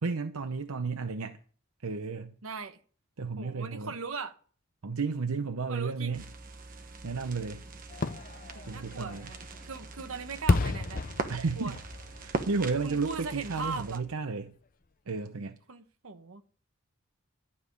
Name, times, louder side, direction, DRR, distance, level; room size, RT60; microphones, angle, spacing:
voice 1, 0.0-1.4 1.8-2.3 3.2-3.9 4.8-6.2 7.0-7.6 8.7-9.3 11.3-11.8 12.2-14.5 15.1-15.6, right 4 dB, 85° right, 0.8 m, -32 dB
voice 2, 2.4-2.8 3.4-4.4 5.7-6.2 8.5-9.4 9.6-11.0 11.6-11.7 12.8-14.0 15.3-16.4, right 4 dB, 70° right, 1.1 m, -39 dB
sound 1, 6.1-14.0, right 3 dB, 40° right, 1.2 m, -41 dB
Fireworks, 7.9-13.7 14.1-14.2, left 3 dB, 40° left, 0.6 m, -33 dB
12.0 x 5.5 x 8.2 m
head